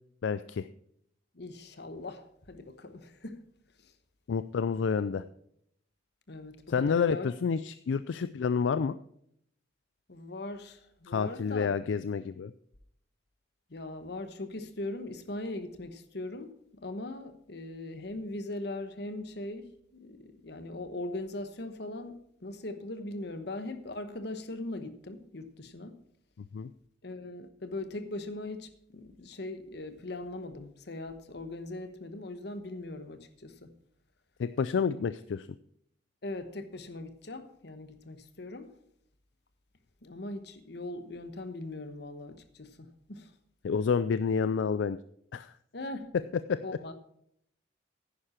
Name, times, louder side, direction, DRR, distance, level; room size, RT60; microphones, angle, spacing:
voice 1, 0.2-0.7 4.3-5.2 6.7-8.9 11.1-12.5 26.5-26.7 34.4-35.5 43.6-45.0 45.3-45.5 46.1-46.6, left 6 dB, 80° left, 0.4 m, -29 dB
voice 2, 1.3-3.4 3.8-3.9 5.1-5.2 6.3-7.3 10.1-11.7 13.7-22.1 22.4-26.0 27.0-33.7 36.2-38.7 40.0-43.3 45.7-46.1 46.6-46.9, left 2 dB, 60° left, 1.1 m, -40 dB
10.5 x 9.8 x 4.4 m
head